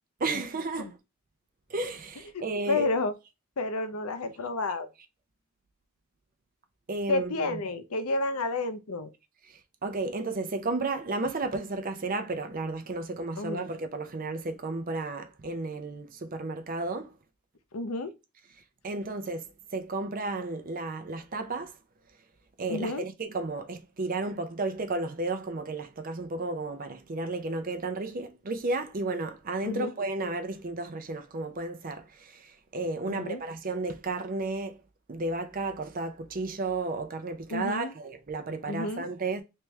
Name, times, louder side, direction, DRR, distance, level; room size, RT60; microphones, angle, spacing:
voice 1, 0.2-1.0 1.7-2.9 6.9-7.6 9.5-17.1 18.8-21.7 22.6-34.8 35.1-39.4, right 3 dB, 40° right, 0.5 m, -33 dB
voice 2, 2.3-3.1 3.6-4.9 7.1-9.1 13.4-13.6 17.7-18.1 22.7-23.0 29.6-29.9 33.1-33.4 37.5-37.9 38.7-39.1, left 2 dB, 85° left, 0.6 m, -30 dB
3.3 x 3.0 x 3.3 m
head